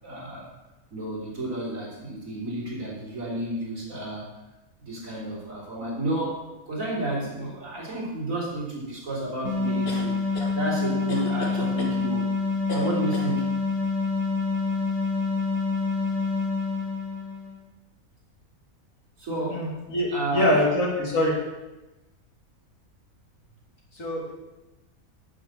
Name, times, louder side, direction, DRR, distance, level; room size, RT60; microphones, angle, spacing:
voice 1, 0.0-0.5 0.9-4.3 4.8-12.3 12.7-13.5 19.2-19.7 20.1-20.6, right 1 dB, 70° right, -5 dB, 4.2 m, -31 dB
sound 1, 9.4-17.6, left 4 dB, 80° left, 3.0 m, -27 dB
sound 2, 9.9-10.5 11.1-12.0 12.7-13.3, left 3 dB, 45° left, 1.6 m, -36 dB
voice 2, 19.5-21.3 23.9-24.3, left 1 dB, 65° left, -3 dB, 3.2 m, -24 dB
8.6 x 7.7 x 7.7 m, 1.0 s
omnidirectional pair, 1.5 m